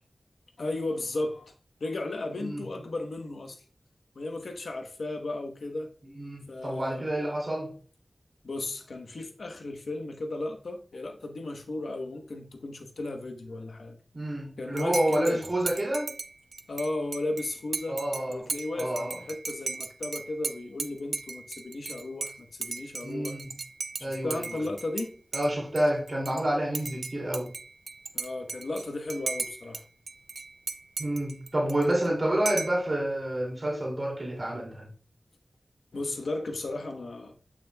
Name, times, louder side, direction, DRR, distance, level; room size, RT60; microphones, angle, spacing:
voice 1, 0.6-1.5 1.8-3.6 4.1-5.9 6.5-7.1 8.4-14.0 14.6-15.4 16.7-18.0 18.3-23.4 24.2-25.1 28.1-29.8 35.9-37.3, left 2 dB, 80° left, 1.0 m, -35 dB
voice 2, 6.1-7.7 14.1-16.1 17.9-18.4 18.7-19.2 23.0-23.4 24.0-24.7 25.3-27.5 31.0-34.9, right 1 dB, 40° right, 2.6 m, -29 dB
Dishes pots and pans / Cutlery silverware / Chink clink, 14.8-25.1 25.3-26.4 26.7-29.8 30.1-32.1 32.5-32.8, right 4 dB, 85° right, 0.5 m, -37 dB
9.0 x 6.1 x 2.3 m
wide cardioid pair, 65°, 0 cm